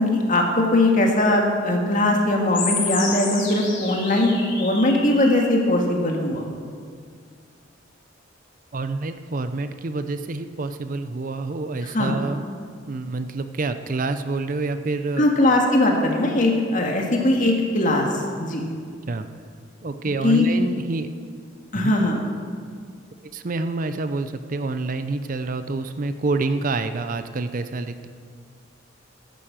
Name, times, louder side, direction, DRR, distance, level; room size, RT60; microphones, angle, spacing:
voice 1, 0.0-6.5 11.9-12.2 15.2-18.6 20.2-20.4 21.7-22.2, left 1 dB, 40° left, 1 dB, 1.9 m, -20 dB
sound 1, 2.5-5.5, left 4 dB, 65° left, 3.7 m, -30 dB
voice 2, 8.7-12.4 12.9-15.3 19.1-19.3 19.8-21.1 21.7-21.9 23.3-28.1, right 3 dB, 45° right, 10 dB, 0.5 m, -27 dB
11.5 x 10.5 x 7.4 m, 2.1 s
head